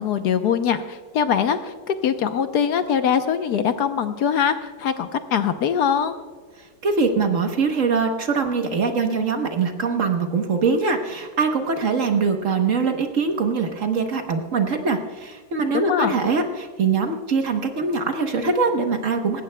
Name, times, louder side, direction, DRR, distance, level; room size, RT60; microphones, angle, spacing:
voice 1, 0.0-6.1 15.7-16.1, left 8 dB, 70° left, 9 dB, 1.2 m, -22 dB
voice 2, 6.8-19.4, right 4 dB, 50° right, 5 dB, 1.3 m, -22 dB
18.5 x 16.5 x 2.2 m, 1.5 s
omnidirectional pair, 1.9 m